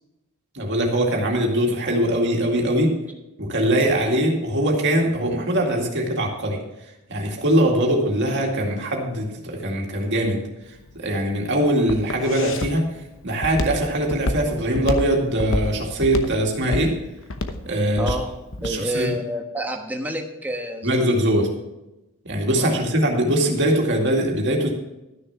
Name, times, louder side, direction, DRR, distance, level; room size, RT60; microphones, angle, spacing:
voice 1, 0.5-3.0 3.4-6.6 7.1-10.4 10.9-12.9 13.2-16.9 17.7-18.2 18.6-19.1 20.8-21.5 22.2-24.7, right 1 dB, 55° right, 0 dB, 2.2 m, -22 dB
Walk footsteps, 10.6-18.8, left 2 dB, 60° left, 1.0 m, -28 dB
voice 2, 18.0-18.3 18.6-21.2 22.6-22.8, right 1 dB, 10° right, 2 dB, 1.2 m, -29 dB
13.0 x 6.6 x 5.8 m, 0.97 s
head